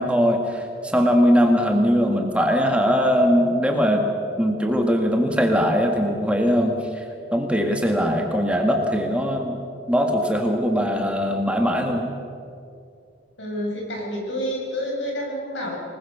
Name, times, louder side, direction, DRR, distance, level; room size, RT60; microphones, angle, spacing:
voice 1, 0.0-4.0 4.4-6.8 7.3-9.6 9.9-12.2, equal, 5° right, 2 dB, 1.9 m, -20 dB
voice 2, 13.4-15.8, equal, 75° left, -1 dB, 7.4 m, -28 dB
26.0 x 20.5 x 6.8 m, 2.4 s
head